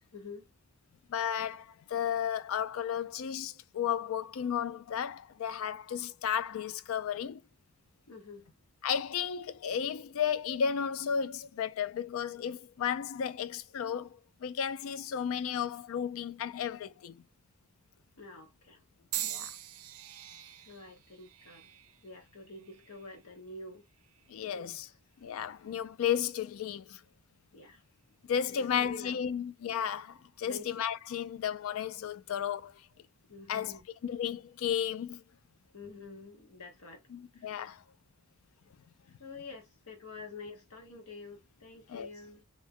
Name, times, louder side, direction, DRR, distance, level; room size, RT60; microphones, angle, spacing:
voice 1, 0.1-0.5 8.1-8.5 18.2-18.8 20.6-21.7 22.0-23.8 24.4-24.9 27.5-27.8 28.5-29.4 30.4-30.6 33.3-33.8 35.7-37.0 37.4-37.7 39.2-42.4, left 3 dB, 90° left, 1.0 m, -48 dB
voice 2, 1.1-7.4 8.8-17.3 19.2-19.5 24.3-24.9 25.2-27.0 28.3-32.8 33.5-35.2 37.1-37.8 41.9-42.1, left 8 dB, 70° left, 0.3 m, -34 dB
sound 1, 19.1-23.3 24.0-24.4 25.4-25.5, right 13 dB, 75° right, 0.4 m, -42 dB
2.7 x 2.1 x 3.5 m
head